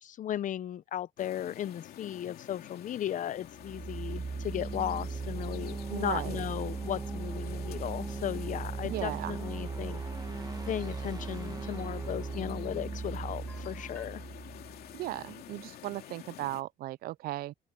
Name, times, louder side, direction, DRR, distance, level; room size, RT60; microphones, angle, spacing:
voice 1, 0.0-10.0 10.7-14.2, left 11 dB, 50° left, 0.8 m, -36 dB
sound 1, 1.2-16.6, left 12 dB, 65° left, 2.7 m, -48 dB
sound 2, 3.5-15.3, right 4 dB, 25° right, 1.5 m, -38 dB
sound 3, 5.4-14.1, left 1 dB, 10° left, 4.9 m, -58 dB
voice 2, 5.9-6.4 8.9-9.4 14.9-17.5, right 16 dB, 60° right, 0.4 m, -36 dB
open air
cardioid pair, 110°, 17 cm